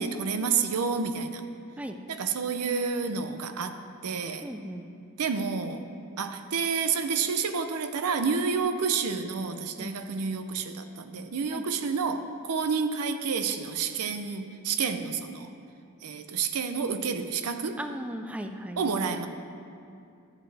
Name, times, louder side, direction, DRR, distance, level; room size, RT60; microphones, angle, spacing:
voice 1, 0.0-1.4 2.1-4.5 5.2-5.9 6.2-15.5 16.0-17.8 18.8-19.3, right 5 dB, 85° right, 8 dB, 0.6 m, -29 dB
voice 2, 4.4-4.9 9.8-9.9 11.5-11.6 17.8-18.8, right 1 dB, 5° right, 6 dB, 0.3 m, -37 dB
13.0 x 6.9 x 3.4 m, 2.5 s
head